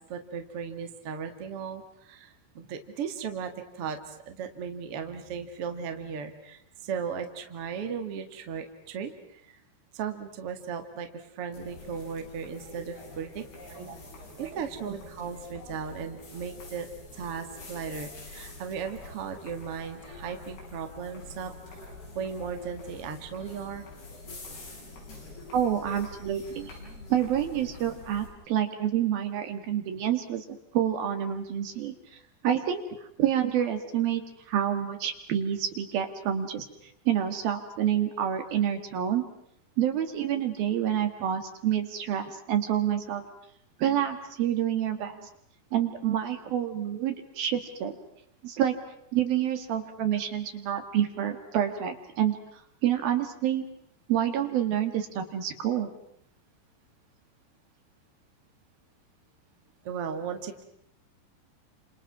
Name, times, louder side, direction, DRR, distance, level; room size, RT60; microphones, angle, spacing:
voice 1, 0.1-9.6 9.9-13.5 14.4-16.9 17.1-21.9 22.1-23.9 29.5-29.7 45.1-45.3 59.8-60.6, right 6 dB, 45° right, 6 dB, 2.3 m, -36 dB
sound 1, 11.5-28.3, left 2 dB, 65° left, 9.4 m, -46 dB
voice 2, 25.5-26.7 27.1-31.9 32.4-32.8 33.2-36.7 37.1-39.3 39.8-43.2 43.8-45.1 45.7-48.0 48.4-48.8 49.1-52.3 52.8-53.6 54.1-55.9, right 10 dB, 65° right, 7 dB, 3.4 m, -28 dB
30.0 x 27.5 x 6.0 m, 0.73 s
omnidirectional pair, 4.9 m